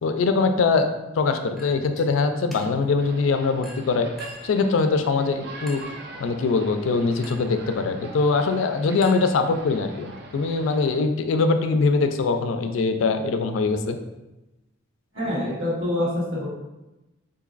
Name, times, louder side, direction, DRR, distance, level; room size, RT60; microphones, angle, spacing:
voice 1, 0.0-4.1 4.4-5.8 6.2-14.0, left 4 dB, 85° left, 7 dB, 0.3 m, -22 dB
Chink clink, 1.6-2.1 2.5-3.0 3.6-4.6 5.7-6.1 7.2-7.6 9.0-9.8, left 1 dB, ahead, 0.6 m, -44 dB
sound 1, 3.0-11.0, right 2 dB, 55° right, 0.4 m, -42 dB
voice 2, 15.1-16.5, left 1 dB, 85° right, -7 dB, 1.2 m, -26 dB
3.8 x 2.6 x 2.4 m, 1.0 s
head